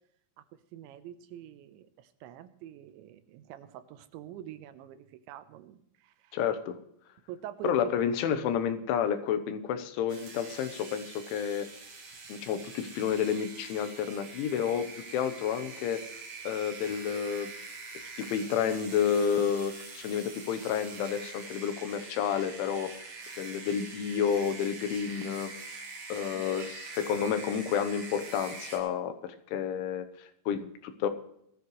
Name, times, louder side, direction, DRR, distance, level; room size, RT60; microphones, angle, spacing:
voice 1, 0.7-6.4 7.3-8.0 26.3-26.5, right 12 dB, 80° right, 12 dB, 3.1 m, -45 dB
voice 2, 6.3-6.8 7.6-11.7 12.3-16.0 16.4-17.5 18.2-22.9 23.4-25.5 26.1-31.1, left 8 dB, 85° left, 8 dB, 3.4 m, -30 dB
sound 1, 10.1-28.8, right 4 dB, 45° right, 4.4 m, -45 dB
19.5 x 13.5 x 3.2 m, 0.73 s
omnidirectional pair, 5.4 m